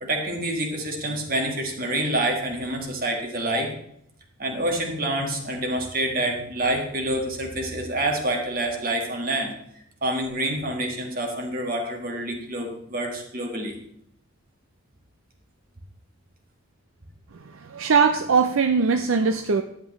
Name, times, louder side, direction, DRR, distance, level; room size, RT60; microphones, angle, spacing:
voice 1, 0.0-3.7 4.4-9.5 10.0-13.8, right 1 dB, 45° right, 2 dB, 1.8 m, -27 dB
voice 2, 17.7-19.6, right 5 dB, 70° right, 7 dB, 0.5 m, -20 dB
11.5 x 8.2 x 3.2 m, 0.74 s
head